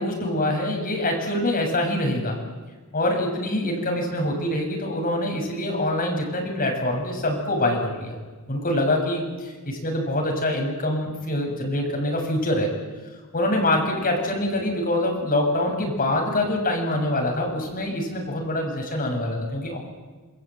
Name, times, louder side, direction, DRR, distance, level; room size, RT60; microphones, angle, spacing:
voice 1, 0.0-2.4 2.9-8.1 8.5-12.7 13.3-19.8, left 1 dB, 40° left, 1 dB, 7.5 m, -25 dB
28.0 x 21.5 x 9.1 m, 1.3 s
head